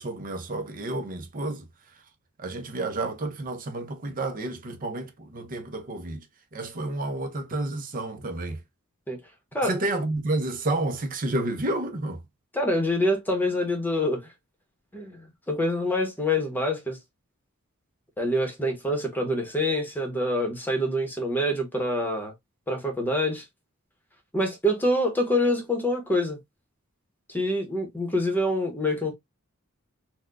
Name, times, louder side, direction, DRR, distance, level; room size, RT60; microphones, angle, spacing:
voice 1, 0.0-1.7 2.4-6.3 6.5-8.6 9.6-12.2, right 2 dB, 40° right, 0.6 m, -30 dB
voice 2, 12.5-14.2 14.9-17.0 18.2-22.3 22.7-23.4 24.3-26.4 27.3-29.1, left 1 dB, 10° left, 0.9 m, -26 dB
4.2 x 2.2 x 2.4 m
head